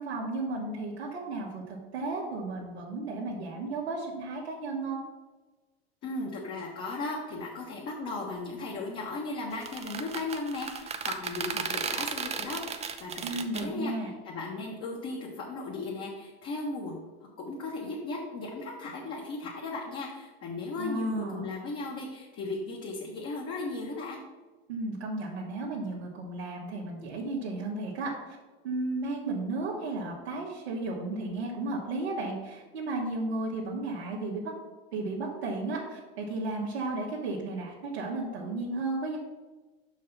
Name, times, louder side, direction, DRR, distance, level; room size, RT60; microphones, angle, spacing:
voice 1, 0.0-5.0 13.2-14.1 20.8-21.5 24.7-28.4 28.6-34.5 34.9-39.2, right 2 dB, 85° right, -5 dB, 1.4 m, -34 dB
voice 2, 6.0-17.0 17.4-24.2, left 3 dB, 45° left, -3 dB, 1.5 m, -36 dB
sound 1, 9.5-13.7, right 6 dB, 20° right, 0.6 m, -35 dB
5.6 x 4.8 x 5.6 m, 1.2 s
hypercardioid pair, 95°, 31 cm